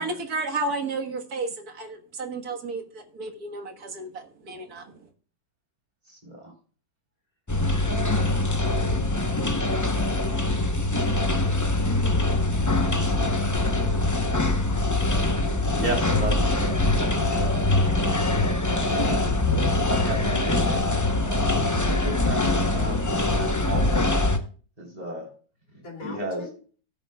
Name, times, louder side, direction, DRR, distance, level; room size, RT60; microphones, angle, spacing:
voice 1, 0.0-4.8, right 3 dB, 60° right, 4 dB, 1.9 m, -32 dB
voice 2, 6.1-6.5 9.5-9.7 15.8-17.6 18.7-19.4 19.9-24.1 24.8-25.3 26.0-26.4, right 2 dB, 25° right, -1 dB, 3.8 m, -33 dB
sound 1, 7.5-24.4, left 2 dB, 20° left, 0.4 m, -23 dB
voice 3, 13.0-14.9 25.8-26.6, left 3 dB, 50° left, -3 dB, 3.5 m, -43 dB
16.0 x 8.9 x 2.3 m, 0.40 s
omnidirectional pair, 1.8 m